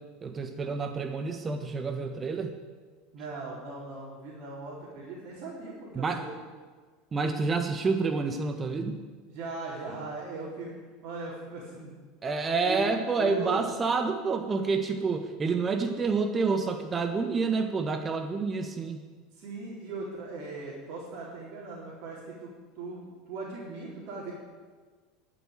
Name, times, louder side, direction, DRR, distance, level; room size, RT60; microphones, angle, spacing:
voice 1, 0.2-2.5 5.9-6.2 7.1-9.0 12.2-19.0, right 4 dB, 25° right, 6 dB, 1.3 m, -28 dB
voice 2, 3.1-6.3 9.3-10.7 11.0-12.0 12.6-13.6 15.8-15.9 19.3-22.5 22.7-24.3, right 3 dB, 55° right, -6 dB, 4.2 m, -39 dB
11.5 x 8.6 x 8.9 m, 1.5 s
hypercardioid pair, 80°, 0 cm